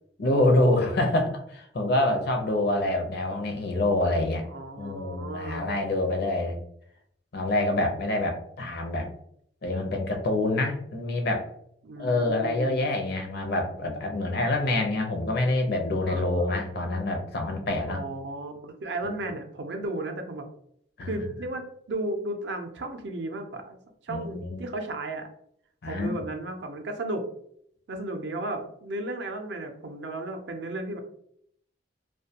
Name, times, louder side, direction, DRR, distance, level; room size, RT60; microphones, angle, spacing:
voice 1, 0.2-4.5 4.8-6.5 7.3-9.1 9.6-11.5 12.0-18.0 19.0-19.1 21.0-21.1 24.1-24.6 25.8-26.2, left 2 dB, 60° left, 3 dB, 0.6 m, -26 dB
voice 2, 4.5-5.7 11.8-12.9 16.1-16.5 17.9-20.4 21.1-23.8 24.0-25.3 25.9-27.3 27.9-31.0, right 2 dB, 65° right, 5 dB, 0.5 m, -34 dB
2.5 x 2.2 x 2.7 m, 0.68 s
head